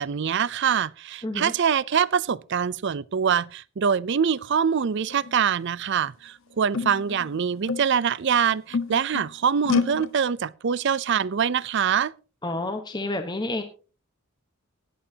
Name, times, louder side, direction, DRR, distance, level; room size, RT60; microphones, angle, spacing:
voice 1, 0.0-12.1, right 7 dB, 55° right, 0.5 m, -24 dB
sound 1, 4.9-5.3 6.1-6.2 6.7-8.1 8.5-9.3 9.6-10.1, left 4 dB, 65° left, 0.9 m, -28 dB
voice 2, 12.4-13.6, left 2 dB, 20° left, 1.1 m, -29 dB
17.0 x 11.0 x 2.8 m
head